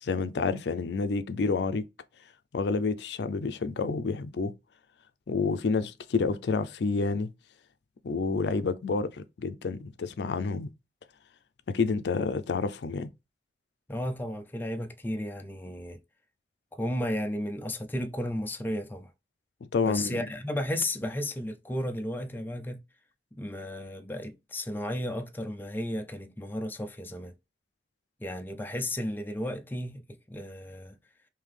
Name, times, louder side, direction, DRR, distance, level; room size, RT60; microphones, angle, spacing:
voice 1, 0.0-1.9 2.5-4.5 5.3-7.3 8.0-10.7 11.7-13.1 19.7-20.2, left 4 dB, 70° left, 0.4 m, -29 dB
voice 2, 13.9-16.0 16.7-19.1 19.8-22.8 23.4-27.3 28.2-30.0 30.3-31.0, left 1 dB, 10° left, 0.4 m, -33 dB
3.3 x 2.7 x 3.6 m
head